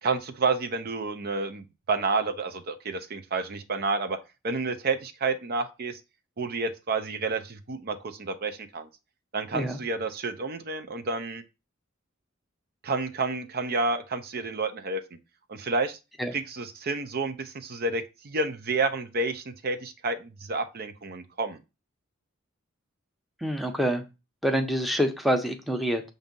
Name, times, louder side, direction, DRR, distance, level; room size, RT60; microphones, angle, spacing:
voice 1, 0.0-4.2 4.4-6.0 6.4-8.9 9.3-11.4 12.8-15.0 15.5-16.0 16.3-21.6, right 3 dB, 50° right, 9 dB, 0.6 m, -30 dB
voice 2, 23.4-24.0 24.4-26.0, equal, ahead, 5 dB, 0.8 m, -26 dB
7.1 x 2.7 x 5.2 m, 0.28 s
head